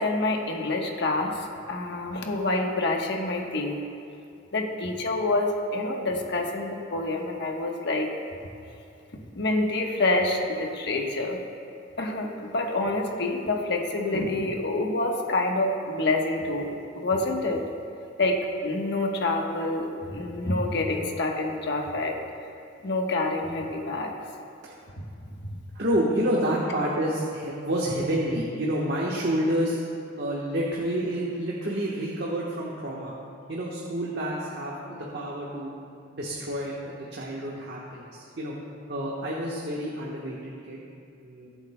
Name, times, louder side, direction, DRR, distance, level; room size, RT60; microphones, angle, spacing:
voice 1, 0.0-1.4 1.7-3.8 4.5-8.2 9.3-11.4 12.0-17.6 18.2-22.2 22.8-24.1 25.3-25.6, left 2 dB, 60° left, 1 dB, 1.1 m, -27 dB
voice 2, 25.7-29.8 30.2-33.1 33.5-35.7 36.1-38.5 38.9-40.8 41.2-41.5, equal, 60° right, -4 dB, 1.2 m, -29 dB
21.5 x 8.3 x 2.2 m, 2.6 s
head